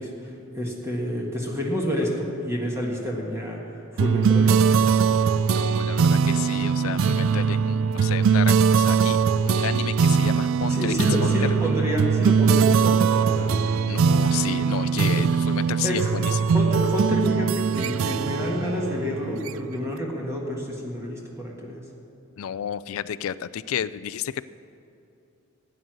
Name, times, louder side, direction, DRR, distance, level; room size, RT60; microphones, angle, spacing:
voice 1, 0.0-3.6 3.9-4.6 10.7-13.8 15.0-15.2 15.8-21.8, equal, 15° right, -2 dB, 1.6 m, -29 dB
sound 1, 4.0-19.9, right 6 dB, 70° right, 0.3 m, -21 dB
voice 2, 5.5-9.2 9.4-10.9 11.2-11.4 13.9-16.6 22.4-24.4, left 9 dB, 75° left, 16 dB, 0.4 m, -32 dB
15.5 x 9.4 x 6.3 m, 2.8 s
head